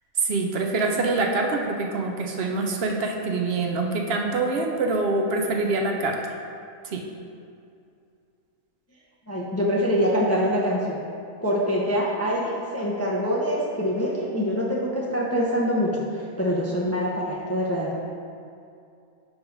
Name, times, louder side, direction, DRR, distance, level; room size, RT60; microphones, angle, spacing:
voice 1, 0.2-6.4 6.9-7.0, right 3 dB, 65° right, 2 dB, 0.6 m, -25 dB
voice 2, 9.3-11.0 11.4-18.0, equal, 20° left, -4 dB, 0.3 m, -25 dB
5.3 x 4.6 x 5.2 m, 2.5 s
omnidirectional pair, 1.6 m